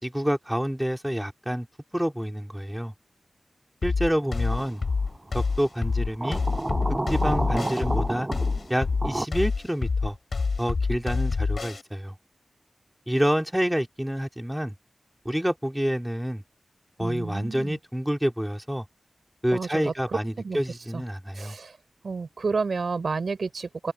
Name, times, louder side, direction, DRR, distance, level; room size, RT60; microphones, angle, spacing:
voice 1, 0.0-1.7 1.9-2.9 3.8-4.8 5.3-6.4 7.1-8.3 8.7-10.2 10.6-12.2 13.1-14.8 15.3-16.4 17.0-18.9 19.4-21.6, equal, 5° right, 3.8 m, -28 dB
sound 1, 3.8-11.8, left 4 dB, 75° left, 6.6 m, -27 dB
sound 2, 4.5-4.9 6.2-9.3, right 1 dB, 25° right, 5.6 m, -30 dB
voice 2, 17.0-17.8 19.5-19.9 20.4-20.6 20.9-21.0 21.3-21.8 22.0-23.9, right 4 dB, 75° right, 4.3 m, -30 dB
wide cardioid pair, 70°, 0 cm